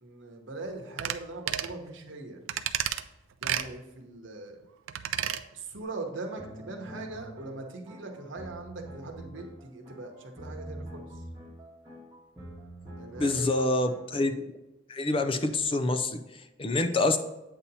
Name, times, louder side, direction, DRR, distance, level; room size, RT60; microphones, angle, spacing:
voice 1, 0.0-2.4 3.4-4.6 5.5-11.2 13.0-13.6 16.9-17.0, right 2 dB, 70° right, 2 dB, 1.0 m, -41 dB
sound 1, 1.0-1.2 1.5-1.7 2.5-3.0 3.4-3.7 4.9-5.4 5.8-5.9, right 10 dB, 90° right, 0.4 m, -31 dB
sound 2, 6.4-14.3, right 1 dB, 15° right, 1.1 m, -45 dB
voice 2, 13.2-14.3 14.9-17.2, left 2 dB, 25° left, 8 dB, 0.4 m, -27 dB
8.4 x 2.9 x 5.4 m, 1.0 s
head